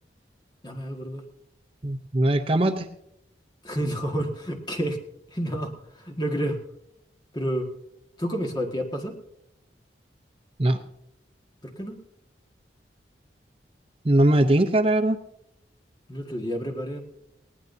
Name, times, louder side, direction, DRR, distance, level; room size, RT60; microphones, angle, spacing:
voice 1, 0.6-1.2 3.6-5.0 5.3-6.6 7.3-7.7 8.2-9.2 11.6-12.0 16.1-17.0, equal, 25° left, 3 dB, 1.7 m, -29 dB
voice 2, 1.8-2.9 10.6-10.8 14.0-15.2, right 1 dB, 30° right, 7 dB, 0.6 m, -20 dB
19.5 x 18.0 x 2.7 m, 0.81 s
head